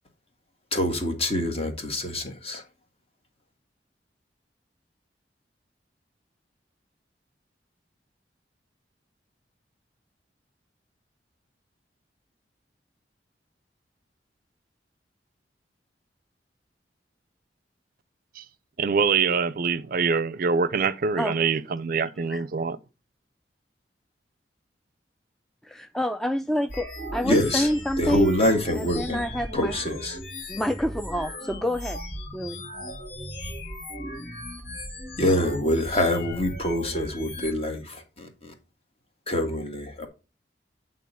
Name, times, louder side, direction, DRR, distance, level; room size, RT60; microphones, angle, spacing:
voice 1, 0.7-2.6 27.2-27.7 28.0-29.3 29.5-30.2 35.2-38.5 39.3-40.1, left 1 dB, 35° left, 1.7 m, -25 dB
voice 2, 18.8-22.8, right 5 dB, 55° right, 0.5 m, -24 dB
voice 3, 25.6-28.3 28.8-29.8 30.5-32.0 32.3-32.6, equal, ahead, 0.4 m, -28 dB
sound 1, 26.7-37.5, equal, 65° left, 2.7 m, -37 dB
8.6 x 3.8 x 5.5 m
head